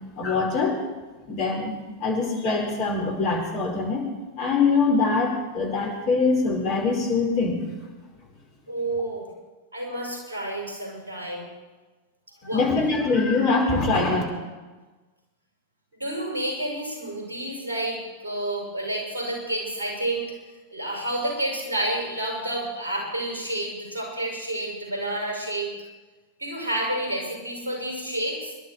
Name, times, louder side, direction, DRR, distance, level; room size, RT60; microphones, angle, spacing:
voice 1, 0.2-0.8 1.3-4.1 4.4-7.6 12.5-14.2, left 4 dB, 45° left, 0 dB, 5.0 m, -23 dB
voice 2, 8.7-9.3 9.7-11.5 12.4-12.6 16.0-20.3 20.7-25.7 26.4-28.5, right 1 dB, 75° right, -1 dB, 5.9 m, -29 dB
26.0 x 11.5 x 4.5 m, 1.3 s
figure-of-eight pair, 90°, 0 cm